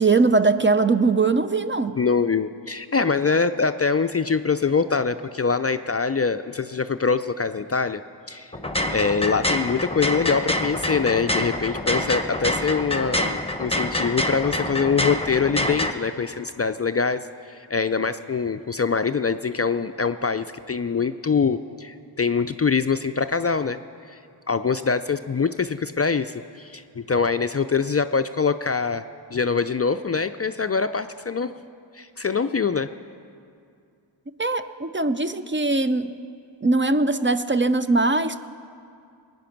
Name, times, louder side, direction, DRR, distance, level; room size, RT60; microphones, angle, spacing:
voice 1, 0.0-2.0 34.4-36.1 36.6-38.4, right 3 dB, 25° right, 11 dB, 0.5 m, -21 dB
voice 2, 2.0-8.0 8.3-8.5 8.9-23.8 24.1-24.2 24.5-31.5 31.9-32.9, left 5 dB, 35° left, 10 dB, 0.4 m, -24 dB
sound 1, 8.5-15.9, left 1 dB, 10° left, 0.9 m, -26 dB
20.0 x 9.3 x 5.9 m, 2.4 s
wide cardioid pair, 55°, 47 cm